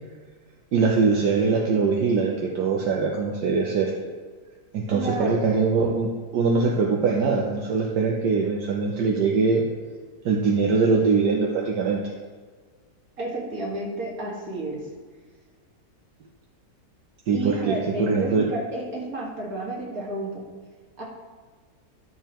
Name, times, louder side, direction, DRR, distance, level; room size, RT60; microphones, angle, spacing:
voice 1, 0.7-3.9 4.7-9.6 10.2-12.0 17.3-18.5, right 4 dB, 80° right, -1 dB, 1.4 m, -22 dB
voice 2, 4.9-5.5 13.2-14.8 17.3-20.4 21.0-21.1, right 1 dB, 55° right, -4 dB, 2.4 m, -31 dB
12.5 x 6.9 x 3.0 m, 1.5 s
omnidirectional pair, 1.8 m